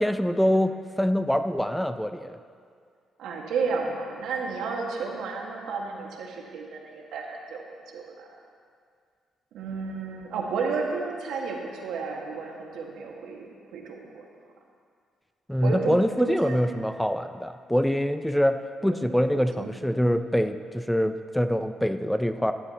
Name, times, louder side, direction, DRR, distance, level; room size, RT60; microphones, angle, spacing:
voice 1, 0.0-2.4 15.5-18.6 18.8-22.5, equal, 5° left, 9 dB, 0.4 m, -24 dB
voice 2, 3.2-8.3 9.5-14.3 15.6-16.8 18.8-19.9, right 4 dB, 85° right, 0 dB, 1.7 m, -32 dB
15.5 x 11.5 x 2.9 m, 2.2 s
cardioid pair, 90°, 0 cm